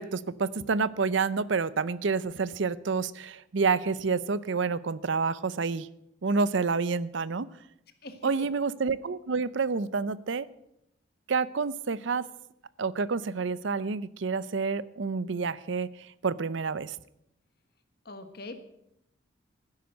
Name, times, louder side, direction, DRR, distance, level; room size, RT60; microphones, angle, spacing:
voice 1, 0.0-5.9 6.2-7.5 8.2-10.5 11.3-12.3 12.8-17.0, right 4 dB, 70° right, 18 dB, 0.6 m, -28 dB
voice 2, 8.0-8.5 18.0-18.6, left 2 dB, 50° left, 9 dB, 1.5 m, -42 dB
12.5 x 10.5 x 7.7 m, 0.80 s
head